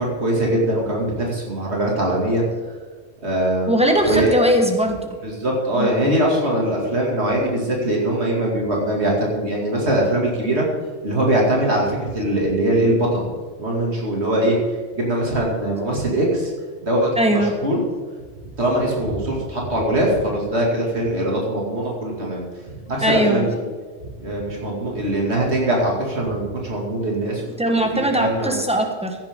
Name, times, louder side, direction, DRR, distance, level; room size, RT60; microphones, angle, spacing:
voice 1, 0.0-2.4 3.2-3.7 4.0-4.5 5.2-10.6 11.0-13.3 13.6-14.6 14.9-16.5 16.8-17.8 18.6-22.4 22.9-23.5 24.2-27.5 27.8-27.9 28.1-28.6, right 1 dB, 75° right, -2 dB, 2.7 m, -21 dB
voice 2, 3.7-5.2 5.8-5.9 17.2-17.5 23.0-23.4 27.6-29.2, right 1 dB, 5° right, 3 dB, 1.3 m, -19 dB
15.5 x 10.5 x 3.7 m, 1.5 s
omnidirectional pair, 1.1 m